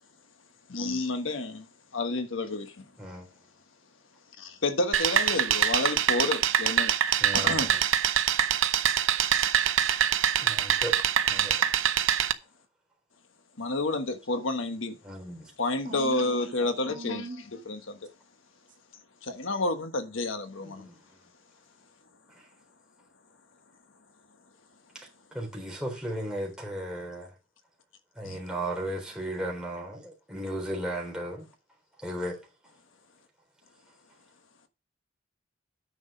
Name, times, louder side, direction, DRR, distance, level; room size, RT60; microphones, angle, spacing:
voice 1, 0.7-1.7 1.9-2.9 4.4-6.9 7.3-7.7 13.6-15.0 15.6-18.0 19.2-20.9 28.2-28.4, left 2 dB, 80° left, 1.3 m, -30 dB
voice 2, 3.0-3.3 7.2-7.8 10.4-11.0 11.3-11.5 15.0-15.5 20.6-21.2 22.4-22.5 24.9-27.3 28.2-31.5 32.0-32.4, right 1 dB, 5° right, 4.0 m, -36 dB
sound 1, 4.9-12.3, right 9 dB, 80° right, 0.7 m, -24 dB
voice 3, 15.8-17.4, right 2 dB, 45° right, 2.2 m, -41 dB
9.6 x 6.3 x 5.0 m
head